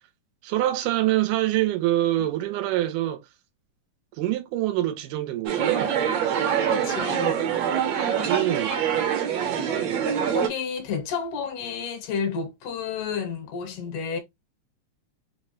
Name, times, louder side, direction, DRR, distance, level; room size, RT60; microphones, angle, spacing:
voice 1, 0.4-3.2 4.2-6.0 8.3-8.8, right 14 dB, 85° right, 2.2 m, -25 dB
sound 1, 5.5-10.5, right 8 dB, 65° right, 1.8 m, -24 dB
voice 2, 6.4-7.4 9.8-10.0 10.3-14.2, left 6 dB, 80° left, 2.5 m, -31 dB
5.2 x 2.1 x 3.0 m
omnidirectional pair, 3.7 m